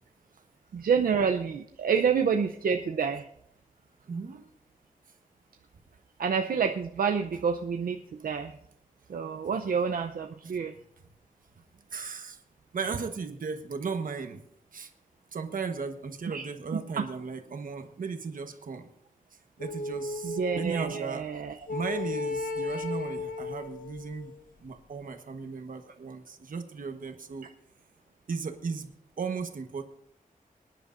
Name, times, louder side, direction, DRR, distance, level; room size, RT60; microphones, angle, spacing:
voice 1, 0.7-3.3 6.2-8.5 9.1-10.7 16.3-16.5 16.7-17.0 20.2-21.5, right 6 dB, 85° right, 4 dB, 0.6 m, -28 dB
voice 2, 4.1-4.4 11.9-12.4 12.7-14.4 14.7-14.9 15.3-18.9 19.6-21.2 21.7-24.3 24.6-27.5 28.3-28.9 29.2-29.8, right 5 dB, 70° right, 6 dB, 1.2 m, -36 dB
sound 1, 19.6-21.1 21.7-24.5, left 3 dB, 70° left, 1.0 m, -35 dB
25.0 x 10.0 x 2.6 m, 0.72 s
wide cardioid pair, 135°, 15 cm